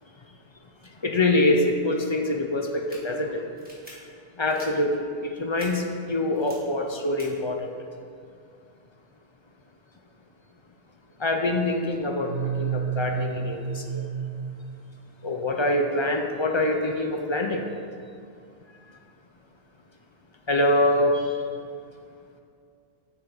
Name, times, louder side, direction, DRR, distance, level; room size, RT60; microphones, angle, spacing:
voice 1, 1.0-3.4 4.4-4.9 5.2-7.7 11.2-12.3 12.6-14.0 15.2-17.6 20.5-21.2, left 1 dB, 45° left, 2 dB, 0.4 m, -24 dB
sound 1, 2.7-3.0 3.6-3.9 4.4-4.7 5.6-5.7 6.3-6.5 7.2-7.3, equal, 10° right, 1.6 m, -47 dB
sound 2, 12.2-15.0, right 7 dB, 85° right, 1.8 m, -30 dB
8.4 x 3.6 x 5.9 m, 2.4 s
omnidirectional pair, 1.1 m